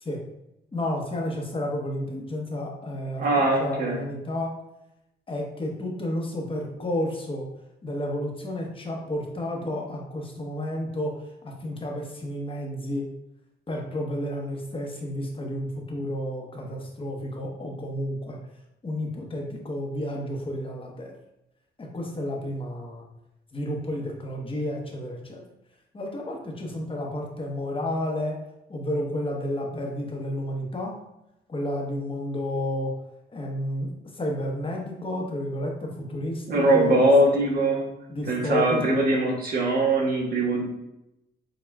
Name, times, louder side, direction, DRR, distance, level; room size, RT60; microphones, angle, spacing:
voice 1, 0.7-4.5 5.3-7.5 7.8-11.1 11.4-13.1 13.7-18.4 18.8-21.1 21.8-23.0 23.5-25.4 25.9-28.4 28.7-30.9 31.5-32.9 33.3-33.9 34.2-37.0 38.1-39.0, left 1 dB, 25° left, 0 dB, 0.9 m, -31 dB
voice 2, 3.2-4.0 36.5-37.8 38.3-40.6, right 1 dB, 50° right, -1 dB, 1.2 m, -21 dB
6.9 x 2.3 x 2.2 m, 0.87 s
cardioid pair, 90°, 20 cm